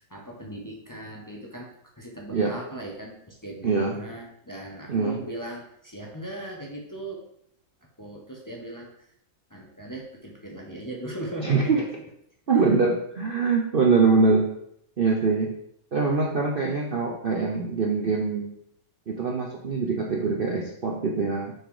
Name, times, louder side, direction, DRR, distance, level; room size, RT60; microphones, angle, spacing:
voice 1, 0.0-7.2 8.0-9.1 9.5-11.9 12.5-12.8, right 1 dB, 15° left, -2 dB, 1.1 m, -38 dB
voice 2, 3.6-3.9 4.9-5.2 11.4-11.8 12.5-14.5 15.0-15.5 15.9-18.5 19.1-21.5, right 4 dB, 45° right, 0 dB, 0.8 m, -23 dB
6.4 x 4.6 x 4.9 m, 0.72 s
omnidirectional pair, 1.7 m